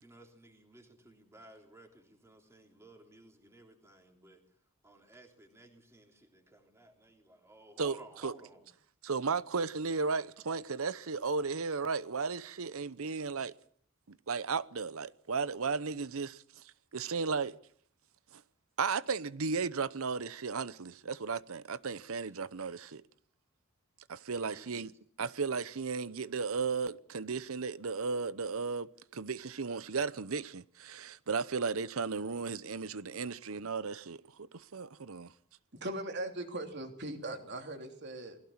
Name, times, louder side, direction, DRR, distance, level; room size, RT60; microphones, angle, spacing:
voice 1, 0.0-4.4 4.8-8.7 24.3-24.9, right 1 dB, 10° right, 3.4 m, -57 dB
voice 2, 7.8-8.3 9.0-13.5 14.1-16.6 16.9-17.6 18.3-18.4 18.8-23.0 24.1-24.9 25.2-34.2 34.5-35.3, right 4 dB, 70° right, 0.8 m, -35 dB
voice 3, 35.7-38.4, right 1 dB, 50° right, 3.2 m, -40 dB
20.5 x 16.5 x 8.7 m
head